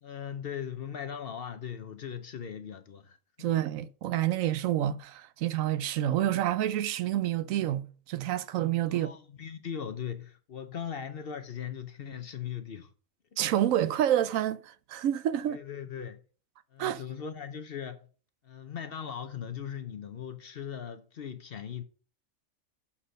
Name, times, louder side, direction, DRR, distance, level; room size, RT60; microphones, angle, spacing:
voice 1, 0.0-3.6 8.9-12.9 15.5-16.2 16.7-18.1 18.4-21.8, left 8 dB, 50° left, 0.8 m, -39 dB
voice 2, 3.4-9.1 13.4-15.6 16.8-17.0, right 12 dB, 80° right, 1.0 m, -28 dB
7.4 x 4.2 x 6.3 m
omnidirectional pair, 1.4 m